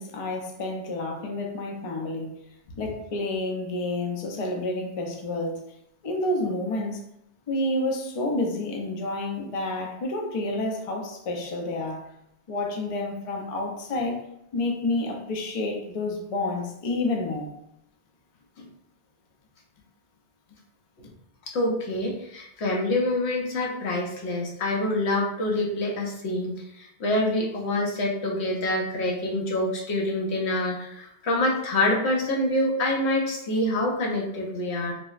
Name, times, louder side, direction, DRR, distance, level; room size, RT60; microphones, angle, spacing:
voice 1, 0.0-2.4 2.8-5.6 6.0-7.0 7.5-12.0 12.5-14.2 14.5-17.5, left 2 dB, 45° left, 1 dB, 0.4 m, -29 dB
voice 2, 21.5-34.9, left 1 dB, 85° left, -1 dB, 1.0 m, -26 dB
3.7 x 2.0 x 2.4 m, 0.80 s
omnidirectional pair, 1.1 m